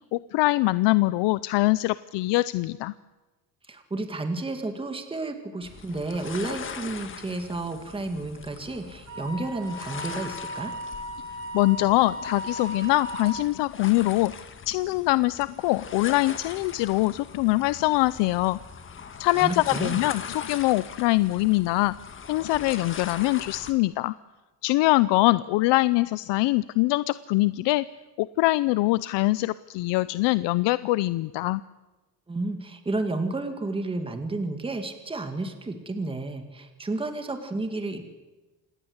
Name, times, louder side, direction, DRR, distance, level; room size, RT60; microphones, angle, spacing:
voice 1, 0.1-2.9 11.5-14.3 14.7-18.6 19.2-21.9 22.3-24.1 24.6-27.8 28.2-31.6, left 19 dB, 90° left, 16 dB, 0.7 m, -23 dB
voice 2, 3.7-10.7 19.3-20.0 32.3-38.1, right 2 dB, 15° right, 6 dB, 2.3 m, -31 dB
sound 1, 5.6-23.7, left 6 dB, 30° left, 1.8 m, -41 dB
Wind instrument woodwind instrument, 9.1-13.5, equal, 45° right, 6.8 m, -36 dB
27.0 x 19.5 x 8.1 m, 1.2 s
cardioid pair, 160°, 41 cm